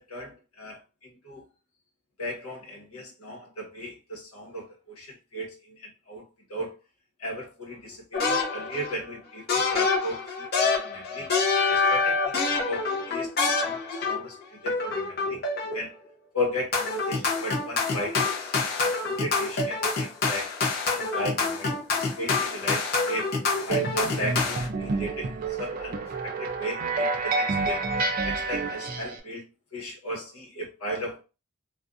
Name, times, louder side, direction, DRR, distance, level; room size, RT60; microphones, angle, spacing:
voice 1, 0.0-1.4 2.2-6.2 6.5-6.7 7.2-11.3 11.7-13.3 13.6-15.9 16.3-20.5 20.9-23.3 23.7-25.3 25.6-27.8 28.2-29.4 29.7-31.2, equal, 85° left, 0 dB, 1.0 m, -36 dB
sound 1, 8.1-8.9 9.5-14.3 14.7-15.9 16.7-24.7, left 4 dB, 45° left, 0.6 m, -26 dB
sound 2, 23.7-29.2, right 3 dB, 40° right, 0.3 m, -29 dB
2.5 x 2.1 x 2.4 m, 0.30 s
head